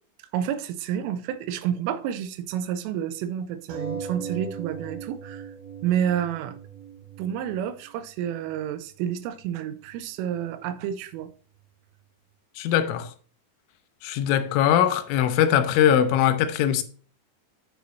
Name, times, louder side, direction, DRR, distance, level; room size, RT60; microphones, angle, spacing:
voice 1, 0.3-5.5 5.8-6.6 7.2-11.3, right 9 dB, 85° right, 3.3 m, -29 dB
sound 1, 3.7-8.7 9.4-9.5 9.8-9.9, right 5 dB, 55° right, 3.8 m, -38 dB
voice 2, 12.6-13.1 14.0-16.8, left 10 dB, 85° left, 3.3 m, -21 dB
9.6 x 6.2 x 2.6 m
omnidirectional pair, 5.7 m